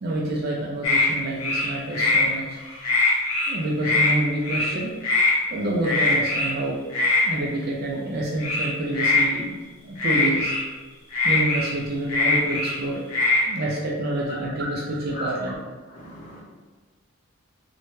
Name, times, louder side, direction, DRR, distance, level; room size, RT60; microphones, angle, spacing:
voice 1, 0.0-2.6 3.5-4.9 5.5-6.8 7.2-9.6 9.8-10.5 11.2-13.0 13.5-15.6, right 1 dB, 45° right, -3 dB, 0.3 m, -27 dB
sound 1, 0.8-1.1 1.4-2.3 2.6-3.5 3.8-4.1 4.4-4.7 5.0-5.3 5.8-6.5 6.9-7.2 8.4-9.3 10.0-10.6 11.1-12.8 13.1-13.4, left 3 dB, 80° left, 0.7 m, -22 dB
voice 2, 15.9-16.4, left 2 dB, 35° left, -5 dB, 0.7 m, -36 dB
2.7 x 2.1 x 3.0 m, 1.3 s
head